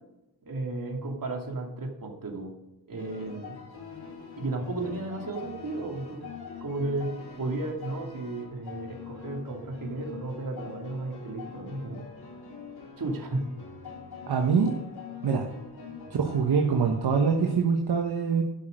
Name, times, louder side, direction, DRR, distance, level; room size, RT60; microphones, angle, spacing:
voice 1, 0.4-2.5 2.9-3.5 4.4-6.3 6.6-12.1 13.0-13.5, right 2 dB, 55° right, 1 dB, 2.6 m, -34 dB
sound 1, 3.0-17.5, left 6 dB, 70° left, 3.6 m, -44 dB
voice 2, 14.3-14.7 15.2-15.5 16.1-18.4, right 5 dB, 70° right, 2 dB, 1.3 m, -24 dB
12.0 x 6.2 x 6.5 m, 0.96 s
cardioid pair, 85°, 40 cm